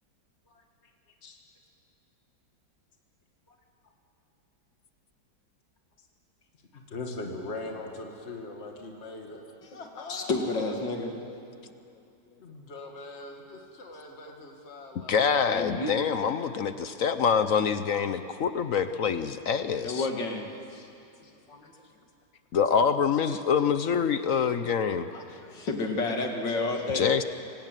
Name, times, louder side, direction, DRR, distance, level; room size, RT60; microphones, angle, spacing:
voice 1, 0.5-0.9 1.2-1.4 3.5-3.6 6.0-6.1 6.7-9.5 9.7-10.7 12.4-15.4 20.7-20.9 21.2-21.3 23.1-23.2 26.5-26.8, left 2 dB, 35° left, 2.3 m, -42 dB
voice 2, 10.1-11.2 15.5-15.9 19.8-20.5 21.5-21.7 25.1-27.1, left 3 dB, 75° left, 2.8 m, -30 dB
voice 3, 15.1-20.1 22.5-25.1 26.9-27.2, left 6 dB, 55° left, 1.0 m, -25 dB
27.0 x 18.5 x 9.1 m
omnidirectional pair, 2.0 m